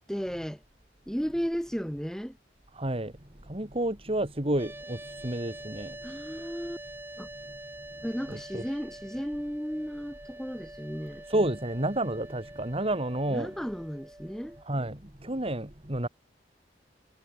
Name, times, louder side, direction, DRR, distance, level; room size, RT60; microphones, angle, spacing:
voice 1, 0.1-0.6 1.1-2.4 6.0-6.8 7.2-7.3 8.0-11.2 13.3-14.6, equal, 5° left, 6.3 m, -34 dB
voice 2, 2.8-3.1 3.5-6.0 8.3-8.6 11.3-13.5 14.7-16.1, right 1 dB, 35° right, 2.9 m, -30 dB
sound 1, 4.6-14.6, right 1 dB, 15° right, 5.9 m, -46 dB
head